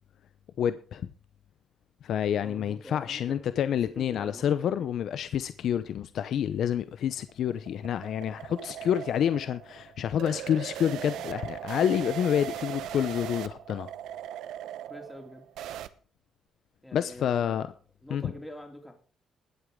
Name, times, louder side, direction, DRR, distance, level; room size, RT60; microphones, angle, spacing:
voice 1, 0.6-1.1 2.0-13.9 16.9-17.7 18.1-18.2, left 9 dB, 70° left, 0.7 m, -28 dB
voice 2, 2.4-4.9 14.9-15.4 16.8-17.6 18.0-18.9, left 1 dB, 10° left, 3.2 m, -45 dB
sound 1, 6.9-15.9, right 11 dB, 85° right, 0.9 m, -39 dB
20.5 x 8.0 x 3.7 m
cardioid pair, 90°, 0 cm